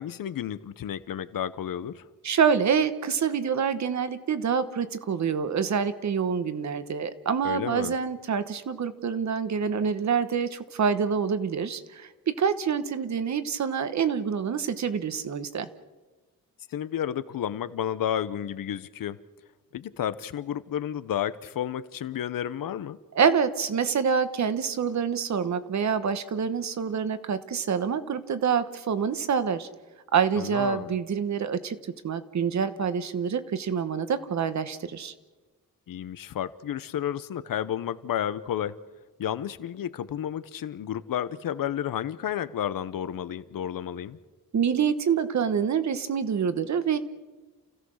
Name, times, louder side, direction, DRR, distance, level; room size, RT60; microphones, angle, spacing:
voice 1, 0.0-2.0 7.4-8.0 16.7-19.2 19.7-23.0 30.4-30.9 35.9-38.7 39.2-44.2, left 10 dB, 75° left, 15 dB, 0.9 m, -31 dB
voice 2, 2.2-15.7 23.1-29.7 30.1-31.8 32.0-35.1 44.5-47.0, right 7 dB, 55° right, 12 dB, 1.2 m, -26 dB
29.0 x 16.0 x 6.4 m, 1.2 s
wide cardioid pair, 170°, 34 cm